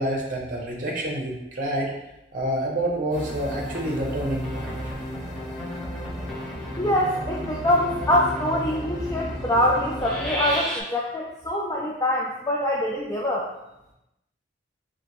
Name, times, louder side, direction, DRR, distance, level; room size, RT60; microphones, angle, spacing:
voice 1, 0.0-1.9 2.3-4.8, right 1 dB, 50° right, -1 dB, 0.9 m, -28 dB
sound 1, 3.1-10.8, equal, ahead, 1.1 m, -32 dB
voice 2, 6.8-13.5, left 1 dB, 20° left, -3 dB, 0.4 m, -24 dB
4.9 x 2.9 x 3.0 m, 0.88 s
head